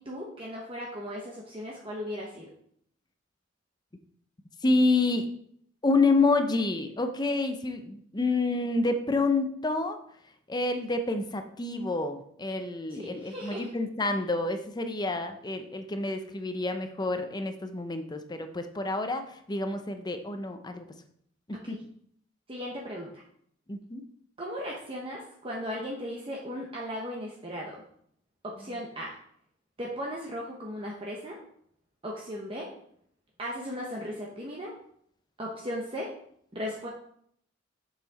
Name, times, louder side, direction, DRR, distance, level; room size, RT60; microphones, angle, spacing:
voice 1, 0.0-2.5 12.9-13.7 21.6-21.8 22.5-23.2 24.4-27.8 28.4-29.1 29.8-31.4 32.0-32.7 33.4-34.7 35.4-36.1 36.5-36.9, equal, 30° right, -2 dB, 1.0 m, -37 dB
voice 2, 4.6-5.3 5.8-10.0 10.5-20.9 21.5-21.8 23.7-24.0, left 3 dB, 20° left, 7 dB, 0.6 m, -28 dB
7.2 x 5.8 x 4.1 m, 0.67 s
head